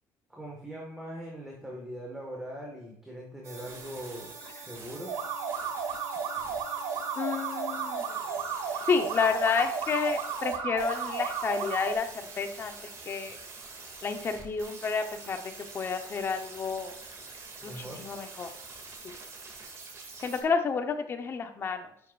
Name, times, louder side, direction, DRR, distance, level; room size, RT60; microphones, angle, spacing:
voice 1, 0.3-4.3 4.6-5.2 17.6-18.0, equal, 5° right, -2 dB, 1.7 m, -41 dB
sound 1, 3.4-20.4, right 4 dB, 40° right, 2.4 m, -45 dB
sound 2, 5.1-11.9, right 6 dB, 85° right, 1.5 m, -33 dB
voice 2, 7.2-8.0 8.9-12.1 12.4-12.7 13.1-13.4 14.0-15.4 15.7-16.9 17.6-18.5 20.2-21.9, left 5 dB, 35° left, 6 dB, 1.0 m, -30 dB
10.5 x 6.9 x 2.5 m, 0.72 s
cardioid pair, 135°, 7 cm